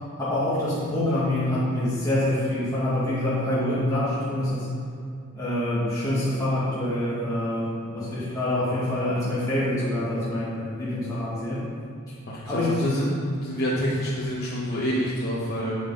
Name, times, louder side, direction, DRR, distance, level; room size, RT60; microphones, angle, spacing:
voice 1, 0.2-4.7 5.3-11.6 12.3-12.8, left 1 dB, 15° left, -11 dB, 2.1 m, -26 dB
voice 2, 12.3-13.1 13.4-15.8, equal, 45° left, -7 dB, 1.3 m, -27 dB
8.7 x 8.4 x 4.0 m, 2.4 s
head